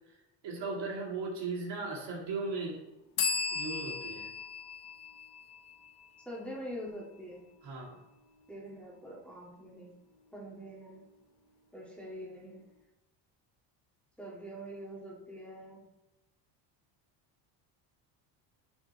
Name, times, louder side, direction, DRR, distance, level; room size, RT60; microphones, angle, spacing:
voice 1, 0.4-2.8 3.5-4.3 7.6-8.0, right 3 dB, 60° right, -2 dB, 2.2 m, -37 dB
sound 1, 3.2-6.7, left 5 dB, 55° left, 1.1 m, -36 dB
voice 2, 6.3-7.4 8.5-9.9 10.3-11.0 11.7-12.6 14.2-15.8, equal, 5° left, -5 dB, 1.9 m, -44 dB
9.6 x 4.3 x 2.9 m, 0.96 s
cardioid pair, 95°, 46 cm